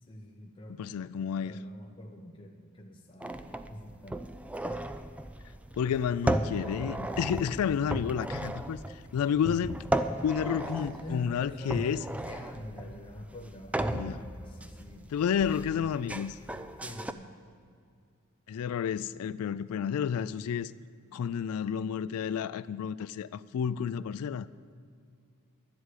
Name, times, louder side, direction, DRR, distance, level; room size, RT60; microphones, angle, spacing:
voice 1, 0.0-4.4 10.6-15.1 16.8-17.3, left 1 dB, 25° left, 0 dB, 0.7 m, -46 dB
voice 2, 0.8-1.6 5.8-9.8 10.2-12.0 13.9-14.2 15.1-16.4 18.5-20.7 21.1-24.5, left 7 dB, 80° left, 15 dB, 0.3 m, -31 dB
sound 1, 3.2-17.1, right 1 dB, 5° right, 0.3 m, -35 dB
11.0 x 8.0 x 8.3 m, 2.3 s
head